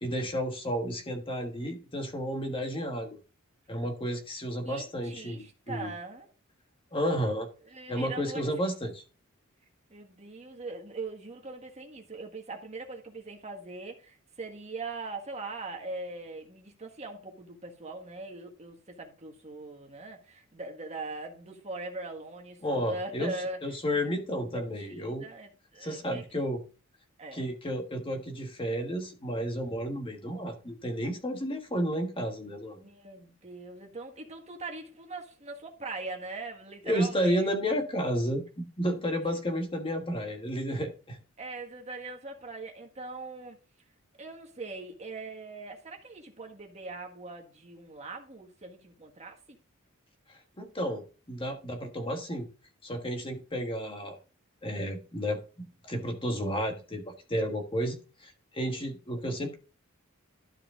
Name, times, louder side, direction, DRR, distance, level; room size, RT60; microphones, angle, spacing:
voice 1, 0.0-3.2 3.7-5.9 6.9-7.5 7.9-9.0 22.6-25.2 25.8-26.6 27.3-32.8 36.8-41.2 50.6-52.5 52.8-54.2 54.6-59.5, equal, 25° left, 1.5 m, -32 dB
voice 2, 4.6-6.3 7.7-8.5 9.9-24.0 24.5-24.6 24.9-26.2 27.2-27.5 32.8-37.5 41.4-43.6 44.2-49.6, right 3 dB, 30° right, 1.6 m, -41 dB
12.5 x 4.9 x 3.7 m
head